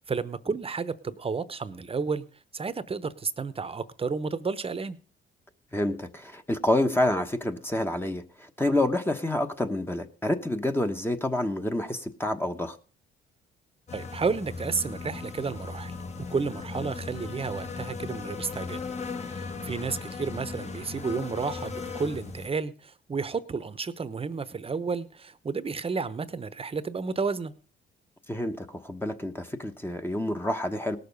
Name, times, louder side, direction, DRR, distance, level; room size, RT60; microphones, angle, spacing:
voice 1, 0.1-2.2 2.5-5.0 13.9-18.8 19.2-27.5, right 5 dB, 30° right, 14 dB, 0.9 m, -32 dB
voice 2, 5.7-12.8 28.3-31.0, left 1 dB, 10° left, 6 dB, 1.1 m, -28 dB
sound 1, 13.9-22.5, left 4 dB, 35° left, 1.3 m, -37 dB
18.5 x 6.7 x 5.4 m, 0.40 s
cardioid pair, 90°, 20 cm